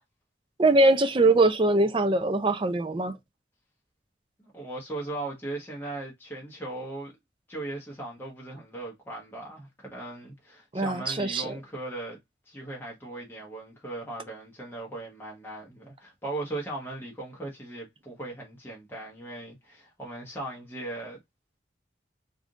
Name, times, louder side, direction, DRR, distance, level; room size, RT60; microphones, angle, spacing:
voice 1, 0.6-3.2 10.7-11.5, right 2 dB, 30° right, 0.5 m, -22 dB
voice 2, 4.4-7.1 7.5-12.2 12.5-21.2, right 2 dB, 10° left, 1.1 m, -38 dB
3.6 x 2.6 x 3.6 m
head